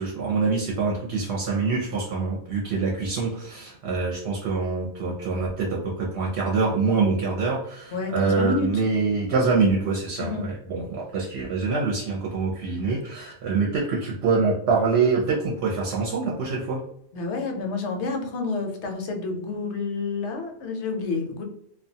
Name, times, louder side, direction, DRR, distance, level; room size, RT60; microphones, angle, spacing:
voice 1, 0.0-16.8, right 4 dB, 65° right, -3 dB, 0.8 m, -25 dB
voice 2, 7.9-8.7 9.5-9.6 10.2-10.5 17.1-21.4, left 4 dB, 70° left, 3 dB, 0.9 m, -29 dB
2.3 x 2.2 x 2.7 m, 0.74 s
omnidirectional pair, 1.2 m